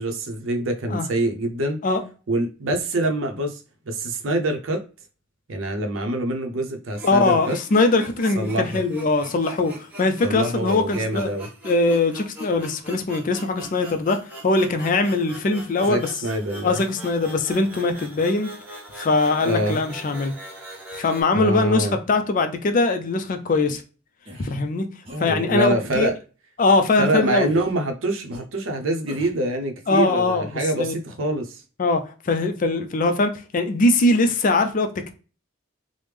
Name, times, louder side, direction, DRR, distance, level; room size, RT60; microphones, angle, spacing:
voice 1, 0.0-1.8 2.3-3.6 3.9-4.8 5.5-7.6 8.3-8.8 10.2-11.5 15.8-16.8 19.4-19.8 21.3-22.0 25.1-26.1 27.0-31.6, right 1 dB, 75° right, 0.6 m, -25 dB
sound 1, 6.9-21.2, right 1 dB, 10° right, 1.0 m, -41 dB
voice 2, 7.0-11.3 11.6-16.1 16.6-18.5 18.9-20.3 20.9-23.8 24.4-24.9 25.2-26.1 26.6-27.5 29.9-30.9 31.8-35.1, left 3 dB, 40° left, 0.4 m, -21 dB
sound 2, 23.7-23.8 24.3-24.5 25.0-25.2 25.8-26.1 26.7-26.8 27.4-27.8 28.3-28.4 29.1-29.4, equal, 30° right, 0.7 m, -41 dB
3.2 x 2.0 x 3.3 m
head